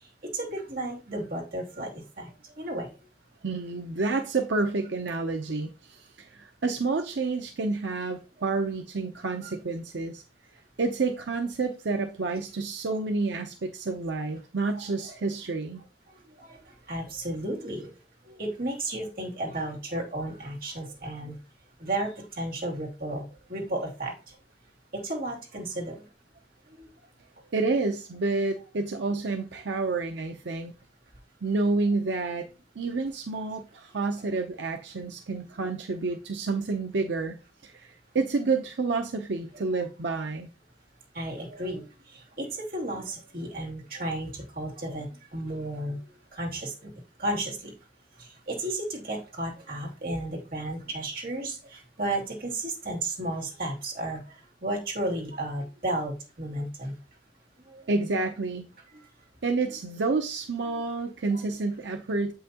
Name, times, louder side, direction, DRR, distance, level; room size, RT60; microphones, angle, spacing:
voice 1, 0.0-2.9 9.4-9.5 14.7-15.1 16.1-17.9 18.2-21.4 21.8-24.4 24.9-26.0 26.7-26.9 41.1-46.0 46.3-46.9 47.2-47.7 48.2-56.9 57.7-57.9 58.9-59.1 60.7-60.8 61.3-61.4, right 1 dB, 55° right, 2.5 m, -34 dB
voice 2, 3.4-10.2 10.8-15.8 27.5-30.7 31.4-32.5 32.8-37.4 37.6-40.5 57.9-58.6 59.4-62.3, right 3 dB, 90° right, 0.6 m, -29 dB
7.7 x 5.6 x 2.9 m
head